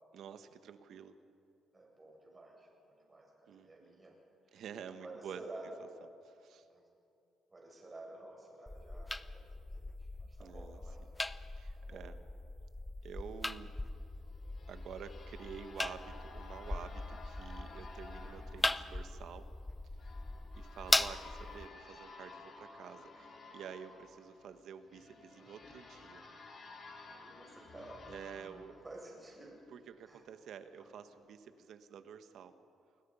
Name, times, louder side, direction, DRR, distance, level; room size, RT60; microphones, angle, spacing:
voice 1, 0.1-1.2 3.5-4.0 4.5-5.4 5.8-5.9 6.2-6.6 10.4-11.1 11.5-12.2 13.0-13.7 14.7-19.5 20.0-20.1 20.6-26.2 28.1-28.8 29.7-32.5, right 7 dB, 70° right, 9 dB, 1.4 m, -49 dB
voice 2, 1.7-4.2 4.5-5.7 6.6-6.8 7.5-11.0 11.7-12.0 25.4-25.6 27.1-28.1 28.7-29.6 30.0-30.3 30.8-30.9, right 2 dB, 25° right, -1 dB, 8.0 m, -52 dB
sound 1, 8.7-21.7, left 2 dB, 15° left, 0.7 m, -39 dB
sound 2, 13.9-29.6, left 3 dB, 55° left, 4.9 m, -54 dB
29.0 x 21.0 x 5.7 m, 2.5 s
cardioid pair, 90°, 0 cm